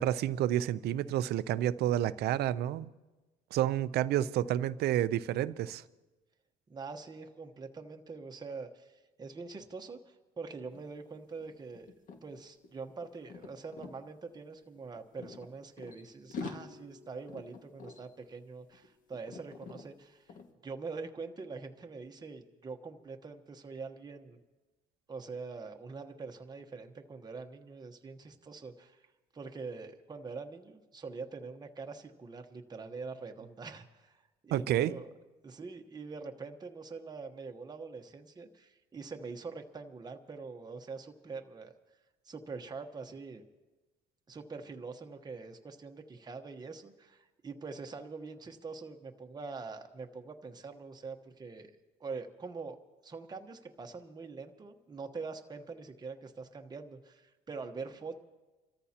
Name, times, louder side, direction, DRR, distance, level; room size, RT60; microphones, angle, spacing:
voice 1, 0.0-2.9 3.5-5.8 34.5-35.0, right 12 dB, 75° right, 0.6 m, -30 dB
voice 2, 6.7-11.9 12.2-20.3 20.6-24.4 25.1-29.1 29.3-35.1 35.4-41.7 42.2-43.4 44.3-51.7 52.0-52.8 53.0-58.2, right 4 dB, 25° right, 1.1 m, -44 dB
sound 1, 10.7-10.9 11.1-14.0 14.8-16.0 16.3-18.9 19.1-19.8 20.3-20.5, left 4 dB, 50° left, 1.9 m, -46 dB
28.5 x 14.0 x 2.9 m
cardioid pair, 110°, 17 cm